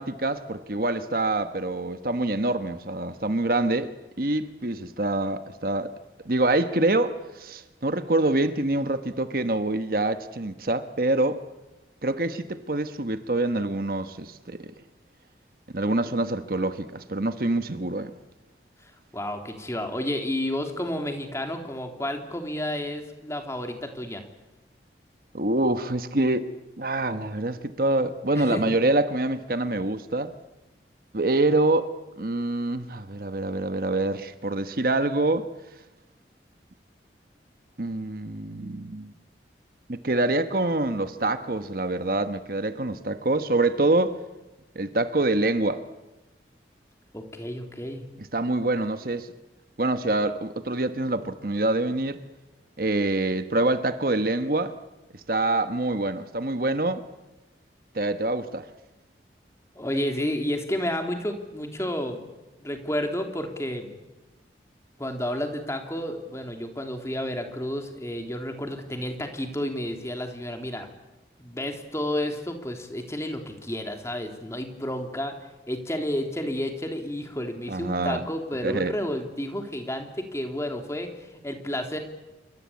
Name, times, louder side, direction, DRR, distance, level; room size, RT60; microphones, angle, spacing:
voice 1, 0.0-5.9 6.2-11.4 12.0-14.7 15.7-18.1 25.3-30.3 31.1-31.9 32.2-35.5 37.8-39.1 39.9-44.2 44.7-45.8 48.2-49.3 49.8-52.2 52.8-54.8 55.3-57.0 57.9-58.6 77.7-78.3 78.6-79.0, right 2 dB, 55° right, 1.2 m, -26 dB
voice 2, 19.1-24.2 28.4-28.8 47.1-48.0 59.7-62.3 62.6-63.9 65.0-70.9 71.4-75.3 75.7-81.1 81.4-82.0, left 1 dB, 15° left, 3.0 m, -31 dB
28.0 x 25.0 x 8.5 m
head